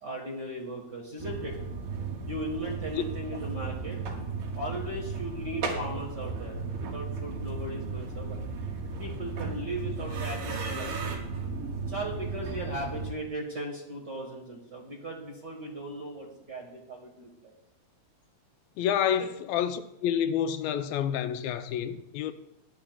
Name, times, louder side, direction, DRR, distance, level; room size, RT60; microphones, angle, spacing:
voice 1, 0.0-1.6 2.2-4.0 4.5-8.4 9.0-11.2 11.9-17.5 19.2-19.3, right 1 dB, 45° right, 1.5 m, -37 dB
sound 1, 1.2-13.1, right 4 dB, 80° right, 3.3 m, -35 dB
voice 2, 18.8-22.3, left 9 dB, 90° left, 2.5 m, -28 dB
18.0 x 11.0 x 2.4 m
omnidirectional pair, 4.0 m